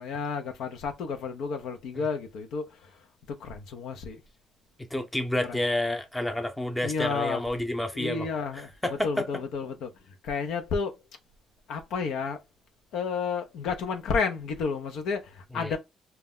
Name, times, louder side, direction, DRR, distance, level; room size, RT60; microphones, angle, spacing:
voice 1, 0.0-3.0 3.3-4.2 5.5-5.6 6.8-7.4 7.9-8.7 9.0-9.9 10.2-11.0 11.7-12.4 12.9-15.8, left 5 dB, 85° left, 0.5 m, -31 dB
voice 2, 4.9-8.3 8.5-9.3 15.5-15.8, left 1 dB, 10° left, 0.6 m, -29 dB
2.2 x 2.1 x 3.5 m
cardioid pair, 90°, 0 cm